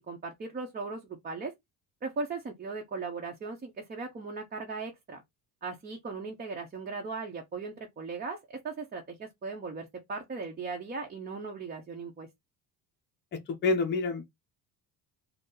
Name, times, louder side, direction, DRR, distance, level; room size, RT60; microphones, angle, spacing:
voice 1, 0.1-1.5 2.0-5.2 5.6-12.3, right 4 dB, 25° right, 0.7 m, -38 dB
voice 2, 13.3-14.2, left 3 dB, 25° left, 0.8 m, -28 dB
4.0 x 2.0 x 3.8 m
cardioid pair, 130°, 39 cm